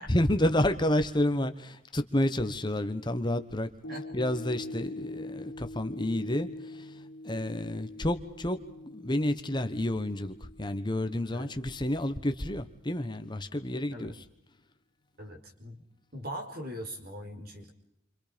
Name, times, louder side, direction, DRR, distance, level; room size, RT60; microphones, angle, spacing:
voice 1, 0.1-3.7 4.1-8.6 8.9-14.2, left 1 dB, 25° left, 8 dB, 1.2 m, -30 dB
sound 1, 3.8-12.2 12.7-12.8, left 2 dB, 85° left, 1.4 m, -44 dB
voice 2, 15.2-15.8 16.1-17.7, equal, 55° right, 3 dB, 4.9 m, -41 dB
30.0 x 26.5 x 5.2 m, 0.79 s
head